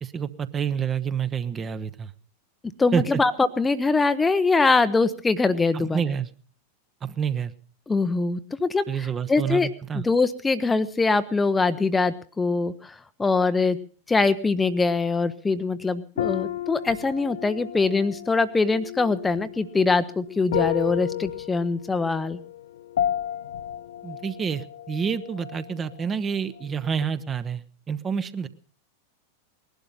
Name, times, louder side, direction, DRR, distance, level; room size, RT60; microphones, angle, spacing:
voice 1, 0.0-2.1 2.9-3.2 5.7-6.3 7.0-7.5 8.9-10.0 24.0-28.5, right 7 dB, 20° right, 14 dB, 0.9 m, -28 dB
voice 2, 2.8-6.0 7.9-8.9 9.3-9.7 9.9-12.9 13.2-13.8 14.1-22.4, left 3 dB, 10° left, 13 dB, 0.7 m, -23 dB
sound 1, 16.2-26.1 26.3-27.0, left 11 dB, 60° left, 0.7 m, -32 dB
20.0 x 12.0 x 5.5 m, 0.41 s
figure-of-eight pair, 90°, 0 cm